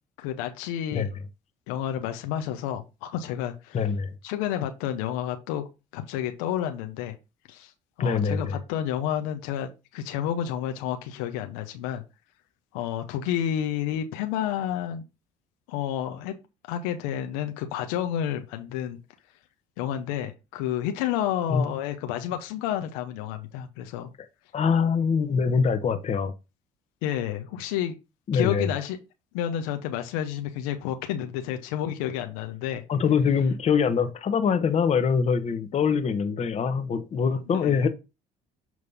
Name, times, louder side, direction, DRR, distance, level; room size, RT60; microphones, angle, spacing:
voice 1, 0.2-1.1 1.7-3.8 4.2-5.6 5.9-7.1 7.5-7.7 8.0-12.0 12.7-15.0 15.7-16.3 16.7-19.0 19.8-24.1 27.0-28.0 28.3-29.0 29.3-32.8 37.5-37.8, left 10 dB, 90° left, 0.9 m, -30 dB
voice 2, 3.7-4.1 8.0-8.5 21.5-21.8 24.5-26.3 28.3-28.7 32.9-37.9, left 6 dB, 45° left, 1.1 m, -24 dB
7.2 x 3.2 x 5.4 m
supercardioid pair, 80°, 16 cm